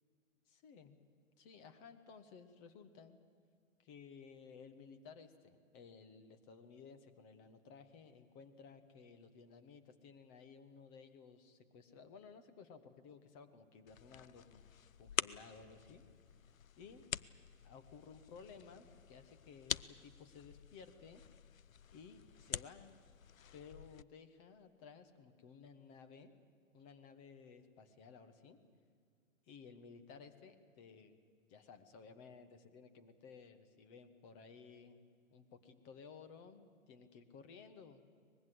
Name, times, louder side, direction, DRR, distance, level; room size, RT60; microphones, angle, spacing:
voice 1, 0.5-1.0 1.4-3.2 3.8-14.6 15.0-16.0 16.8-17.0 17.6-21.2 21.9-23.0 23.5-26.3 26.7-28.6 29.5-31.2 31.5-38.0, left 5 dB, 20° left, 9 dB, 1.3 m, -57 dB
sound 1, 13.9-24.0, left 9 dB, 70° left, 0.6 m, -46 dB
23.5 x 20.5 x 7.9 m, 2.1 s
figure-of-eight pair, 125°, 42 cm